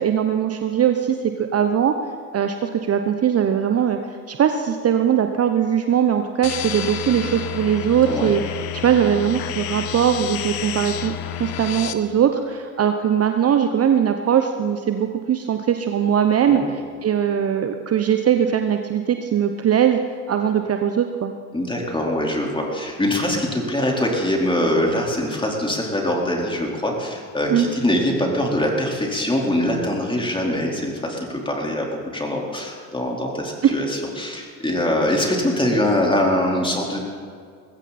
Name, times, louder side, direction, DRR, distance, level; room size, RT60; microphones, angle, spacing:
voice 1, 0.0-1.9 2.3-4.0 4.3-8.4 8.8-11.1 11.4-16.6 17.0-20.0 20.3-21.3 27.5-27.7 33.6-33.7, right 9 dB, 35° right, 7 dB, 1.0 m, -20 dB
sound 1, 6.4-11.9, left 11 dB, 55° left, 1.2 m, -30 dB
voice 2, 8.0-8.4 16.4-16.7 21.5-37.0, left 1 dB, 10° left, -1 dB, 4.3 m, -23 dB
20.5 x 15.5 x 4.3 m, 2.2 s
hypercardioid pair, 65°, 44 cm